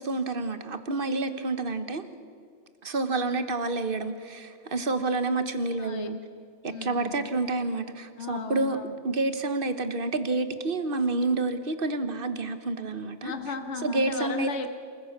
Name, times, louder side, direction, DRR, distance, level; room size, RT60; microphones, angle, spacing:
voice 1, 0.0-2.0 2.8-6.2 6.6-8.8 9.0-13.3 13.8-14.5, right 3 dB, 50° right, 10 dB, 1.5 m, -29 dB
voice 2, 5.8-6.1 6.7-7.3 8.2-8.9 13.2-14.7, left 5 dB, 70° left, 7 dB, 1.5 m, -35 dB
27.5 x 15.0 x 7.3 m, 2.2 s
omnidirectional pair, 1.2 m